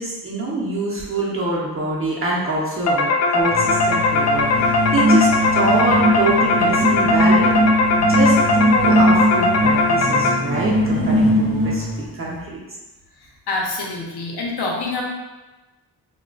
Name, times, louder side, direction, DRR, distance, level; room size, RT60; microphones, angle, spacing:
voice 1, 0.0-7.6 8.0-11.8 12.1-12.6, right 2 dB, 35° right, -5 dB, 0.8 m, -25 dB
sound 1, 2.9-10.7, left 2 dB, 40° left, 0.4 m, -19 dB
sound 2, 3.4-12.0, equal, 20° left, 1.0 m, -20 dB
voice 2, 13.5-15.0, left 3 dB, 75° left, -2 dB, 0.8 m, -26 dB
3.7 x 2.3 x 2.3 m, 1.1 s
cardioid pair, 85°, 40 cm